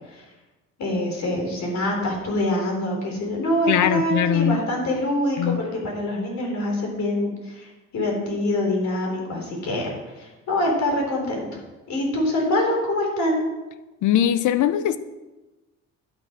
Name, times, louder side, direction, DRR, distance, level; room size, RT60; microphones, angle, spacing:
voice 1, 0.8-11.6 11.9-13.4, left 1 dB, 65° left, 3.9 m, -25 dB
voice 2, 3.7-4.6 5.4-5.6 14.0-15.0, left 10 dB, 80° left, 0.7 m, -21 dB
11.5 x 6.9 x 5.9 m
cardioid pair, 90°, 30 cm